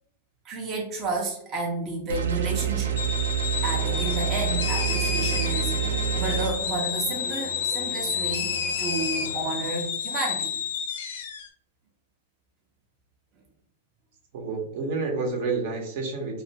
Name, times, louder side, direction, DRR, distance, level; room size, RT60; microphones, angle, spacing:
voice 1, 0.4-3.1 3.6-8.5 8.8-10.5, right 3 dB, 30° right, -2 dB, 0.5 m, -31 dB
sound 1, 2.1-6.5, right 10 dB, 90° right, 0.3 m, -27 dB
sound 2, 3.0-11.5, left 7 dB, 75° left, 0.4 m, -30 dB
sound 3, 3.6-9.7, left 1 dB, 20° left, 0.5 m, -41 dB
voice 2, 14.3-16.4, right 4 dB, 60° right, 0 dB, 0.8 m, -29 dB
2.3 x 2.1 x 2.8 m, 0.70 s
hypercardioid pair, 130°, 0 cm